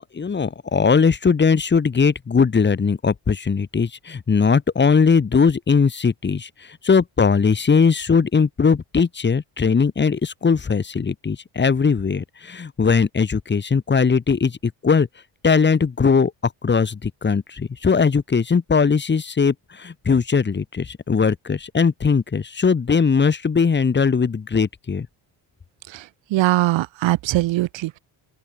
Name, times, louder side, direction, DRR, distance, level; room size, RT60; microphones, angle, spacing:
voice 1, 0.1-15.1 15.4-25.1, left 5 dB, 25° left, 2.3 m, -19 dB
voice 2, 25.9-28.0, right 17 dB, 90° right, 2.5 m, -21 dB
open air
cardioid pair, 150°, 44 cm